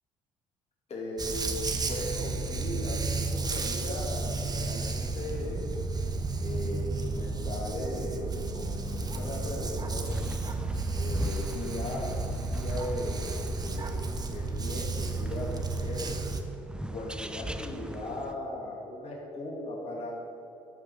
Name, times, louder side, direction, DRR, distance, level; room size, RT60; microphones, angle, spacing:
voice 1, 0.9-5.7 6.4-10.3 10.9-16.2 16.9-20.1, left 1 dB, 50° left, -2 dB, 2.4 m, -38 dB
Dog, 1.2-16.4, right 3 dB, 30° right, 1.1 m, -32 dB
sound 1, 8.9-18.3, equal, 5° right, 0.6 m, -41 dB
12.0 x 5.1 x 6.7 m, 2.9 s
supercardioid pair, 70°, 14 cm